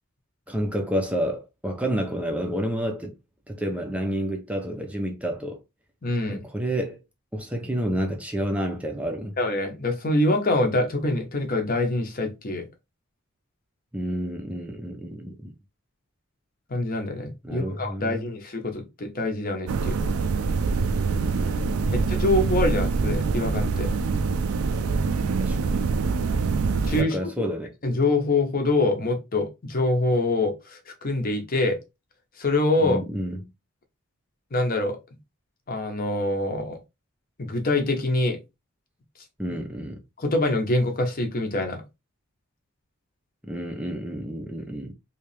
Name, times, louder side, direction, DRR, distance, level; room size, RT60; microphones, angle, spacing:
voice 1, 0.5-3.1 3.5-5.6 6.3-7.0 7.3-9.4 13.9-15.5 17.4-18.3 21.1-22.1 25.4-25.8 27.0-27.7 32.8-33.5 39.4-40.0 43.4-44.9, equal, 5° right, 0.6 m, -30 dB
voice 2, 6.0-6.4 9.4-12.7 16.7-20.0 21.9-23.9 26.8-27.2 27.8-31.8 32.4-33.0 34.5-35.0 35.7-36.8 37.4-38.4 40.2-41.8, left 2 dB, 40° left, 0.9 m, -25 dB
sound 1, 19.7-27.0, right 4 dB, 75° right, 0.4 m, -25 dB
3.2 x 2.7 x 3.2 m
head